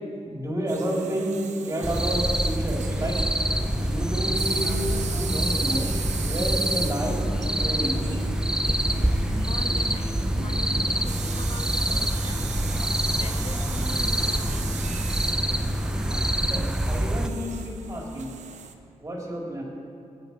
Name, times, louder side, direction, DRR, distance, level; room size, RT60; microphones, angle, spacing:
voice 1, 0.2-3.2 3.8-5.9 6.2-8.0 16.5-18.3 19.0-19.6, right 1 dB, 25° right, -2 dB, 3.1 m, -30 dB
sound 1, 0.7-18.7, right 6 dB, 85° right, 0.8 m, -38 dB
sound 2, 1.8-17.3, right 1 dB, 5° right, 0.6 m, -26 dB
sound 3, 2.8-16.3, left 1 dB, 80° left, 3.8 m, -38 dB
voice 2, 9.4-12.4 13.0-15.6, left 4 dB, 55° left, 6 dB, 0.8 m, -44 dB
20.5 x 8.8 x 4.4 m, 2.5 s
cardioid pair, 85°, 12 cm